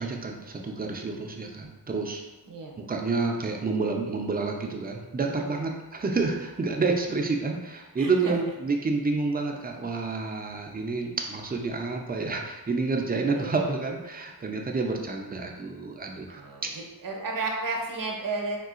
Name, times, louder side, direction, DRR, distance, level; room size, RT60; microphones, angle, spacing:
voice 1, 0.0-2.2 2.8-16.7, right 3 dB, 20° right, 2 dB, 0.5 m, -29 dB
voice 2, 8.0-8.3 13.4-13.7 16.3-16.6 17.0-18.6, right 3 dB, 50° right, 0 dB, 0.7 m, -32 dB
3.8 x 2.4 x 2.4 m, 1.1 s
cardioid pair, 50°, 41 cm